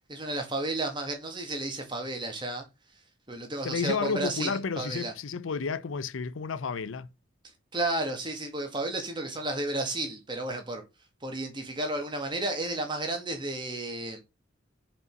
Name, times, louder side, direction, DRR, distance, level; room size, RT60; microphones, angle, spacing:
voice 1, 0.1-2.6 3.3-5.1 7.7-10.8 11.2-14.2, right 2 dB, 25° right, 1.8 m, -32 dB
voice 2, 3.6-7.1, left 5 dB, 85° left, 0.5 m, -31 dB
5.5 x 5.2 x 5.3 m
head